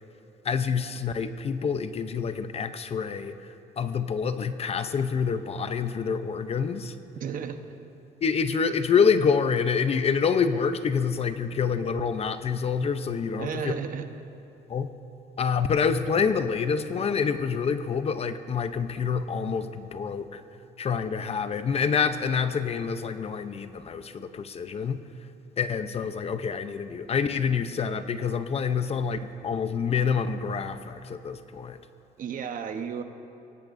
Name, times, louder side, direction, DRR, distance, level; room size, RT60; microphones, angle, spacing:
voice 1, 0.4-3.3 3.8-6.9 8.2-13.7 14.7-14.9 15.4-20.4 20.8-25.0 25.6-31.8, left 6 dB, 35° left, 10 dB, 0.7 m, -27 dB
voice 2, 7.2-7.8 13.4-14.1 32.2-33.0, right 7 dB, 55° right, 7 dB, 1.1 m, -33 dB
23.0 x 17.0 x 2.7 m, 2.9 s
cardioid pair, 110°, 17 cm